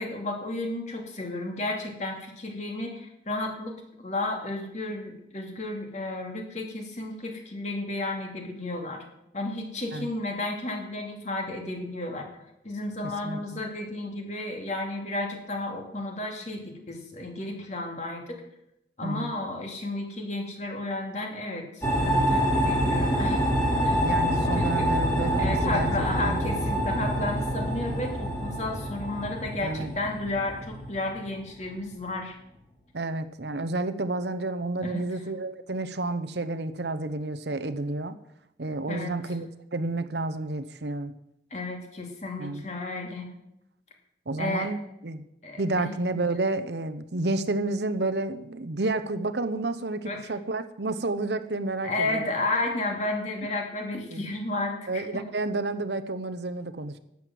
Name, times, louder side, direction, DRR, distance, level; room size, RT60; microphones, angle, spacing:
voice 1, 0.0-3.8 4.0-9.0 9.3-12.3 12.6-18.4 19.0-23.4 23.8-24.0 24.6-24.9 25.4-32.3 34.8-35.0 38.9-39.1 41.5-43.3 44.4-44.7 45.4-46.2 50.1-50.2 51.8-55.2, left 2 dB, 40° left, 2 dB, 2.7 m, -32 dB
voice 2, 13.2-13.6 19.0-19.3 24.0-25.9 26.2-26.4 29.6-29.9 32.9-38.2 38.6-39.5 39.7-41.1 42.4-42.6 44.3-45.2 45.6-52.3 54.1-54.3 54.9-57.0, right 2 dB, 70° right, 10 dB, 0.9 m, -30 dB
sound 1, 21.8-31.4, equal, 15° left, 2.9 m, -26 dB
12.5 x 8.7 x 7.6 m, 0.84 s
head